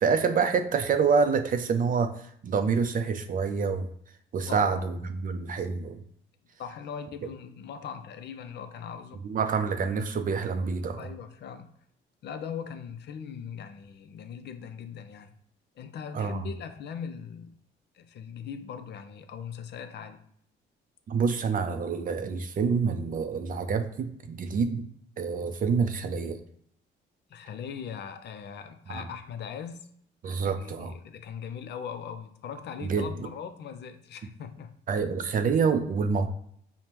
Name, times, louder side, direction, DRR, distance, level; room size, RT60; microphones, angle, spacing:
voice 1, 0.0-3.9 4.3-6.0 9.2-11.1 16.1-16.5 21.1-24.9 25.2-26.4 28.9-29.0 30.2-30.9 32.8-33.1 34.9-36.3, right 5 dB, 45° right, 8 dB, 0.4 m, -27 dB
voice 2, 4.5-4.8 5.6-5.7 6.6-9.2 10.9-11.7 12.2-15.3 15.8-17.6 17.9-20.2 27.3-29.9 30.4-34.7, left 7 dB, 60° left, 9 dB, 0.4 m, -40 dB
5.0 x 2.1 x 2.9 m, 0.67 s
cardioid pair, 90°, 20 cm